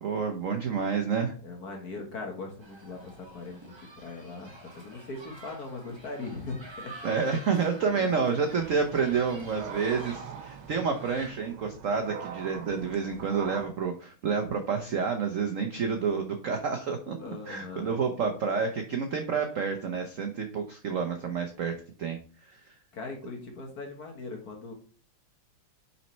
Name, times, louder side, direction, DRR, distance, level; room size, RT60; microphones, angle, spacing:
voice 1, 0.0-1.3 7.0-17.1 17.5-22.2 22.5-22.6, right 5 dB, 65° right, 5 dB, 0.8 m, -29 dB
voice 2, 1.4-7.1 7.9-8.2 17.2-18.0 22.9-24.7, left 3 dB, 50° left, 2 dB, 1.7 m, -40 dB
sound 1, 2.6-11.3, right 2 dB, 40° right, 0.3 m, -48 dB
sound 2, 8.5-13.7, right 7 dB, 80° right, 1.7 m, -43 dB
5.7 x 4.2 x 4.4 m, 0.41 s
omnidirectional pair, 2.3 m